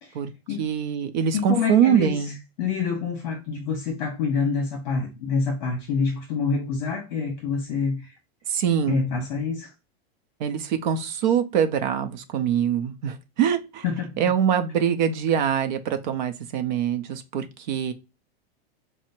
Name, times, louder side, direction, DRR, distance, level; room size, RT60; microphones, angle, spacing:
voice 1, 0.6-2.4 8.5-9.0 10.4-13.8 14.2-17.9, right 8 dB, 50° right, 0.6 m, -24 dB
voice 2, 1.3-2.2 2.6-8.1 8.8-9.7 13.8-14.2, left 5 dB, 45° left, 1.0 m, -27 dB
5.8 x 2.1 x 2.6 m
supercardioid pair, 175°, 31 cm